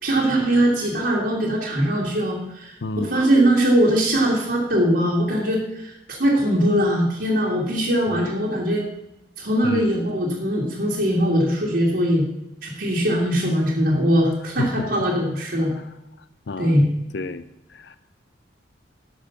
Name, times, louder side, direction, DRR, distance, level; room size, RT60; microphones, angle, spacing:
voice 1, 0.0-5.9 6.2-8.9 9.4-12.2 12.6-15.7 16.6-16.9, equal, 60° right, -5 dB, 2.3 m, -21 dB
voice 2, 2.8-3.2 8.1-8.4 9.6-10.0 14.6-14.9 16.5-16.8 17.1-17.4 17.7-18.0, left 3 dB, 65° left, 13 dB, 0.5 m, -30 dB
11.5 x 6.9 x 5.8 m, 0.90 s
head